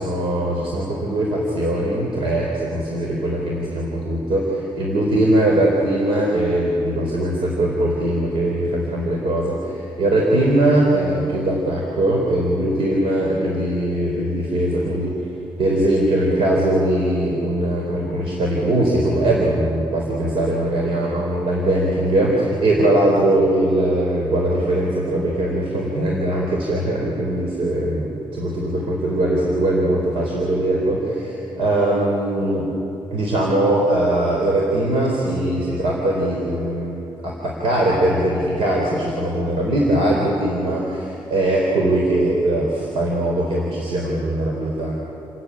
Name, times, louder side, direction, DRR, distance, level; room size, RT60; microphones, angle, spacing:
voice 1, 0.0-15.1 15.6-32.6 33.1-44.9, right 1 dB, 85° right, -2 dB, 4.5 m, -21 dB
30.0 x 15.5 x 9.9 m, 2.8 s
wide cardioid pair, 165°, 9 cm